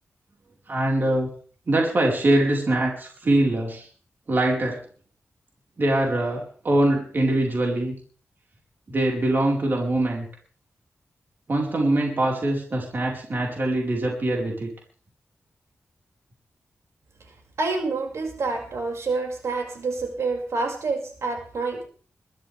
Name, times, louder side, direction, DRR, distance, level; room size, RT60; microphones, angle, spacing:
voice 1, 0.7-1.3 1.7-3.9 4.3-4.8 5.8-7.9 8.9-10.3 11.5-14.7, right 1 dB, 45° right, -1 dB, 4.6 m, -23 dB
voice 2, 17.6-21.8, right 3 dB, 85° right, 0 dB, 5.9 m, -27 dB
22.0 x 13.5 x 3.5 m, 0.43 s
wide cardioid pair, 145°, 5 cm